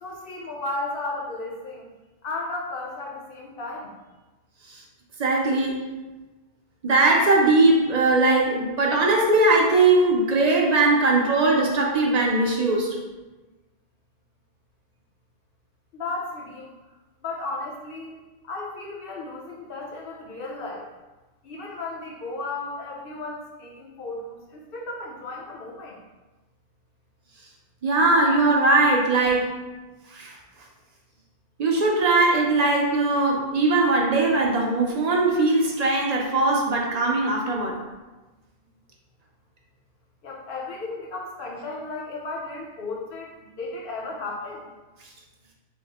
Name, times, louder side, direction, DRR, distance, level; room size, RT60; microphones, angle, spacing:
voice 1, 0.0-1.9 2.2-3.9 15.9-16.7 17.2-18.2 18.5-20.8 21.4-26.0 40.2-43.3 43.6-44.6, left 2 dB, 65° left, -1 dB, 0.9 m, -34 dB
voice 2, 5.2-5.9 6.8-13.0 27.8-29.5 30.1-30.3 31.6-37.7, right 2 dB, 50° right, -1 dB, 0.6 m, -20 dB
3.5 x 2.0 x 4.0 m, 1.2 s
omnidirectional pair, 1.0 m